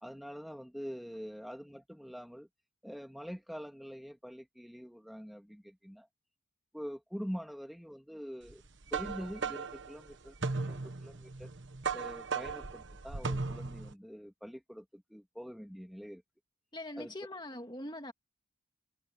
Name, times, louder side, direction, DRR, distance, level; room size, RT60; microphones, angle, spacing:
voice 1, 0.0-2.5 2.8-6.1 6.7-8.6 8.9-11.5 11.9-16.2 17.0-17.1, equal, ahead, 2.2 m, -45 dB
sound 1, 8.5-13.9, right 4 dB, 60° right, 1.3 m, -37 dB
voice 2, 16.7-18.1, left 1 dB, 20° left, 2.2 m, -42 dB
head